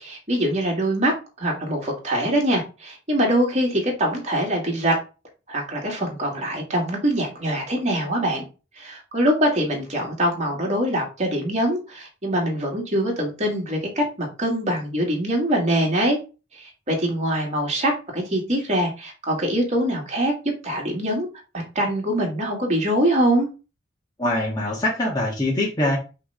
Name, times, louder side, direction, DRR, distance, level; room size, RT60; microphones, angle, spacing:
voice 1, 0.0-5.0 5.5-8.5 8.8-16.2 16.5-20.3 20.6-21.3 21.5-23.5, right 1 dB, 40° right, -1 dB, 2.3 m, -23 dB
voice 2, 24.2-26.0, left 1 dB, 20° left, -4 dB, 1.5 m, -23 dB
5.6 x 3.5 x 5.6 m, 0.32 s
head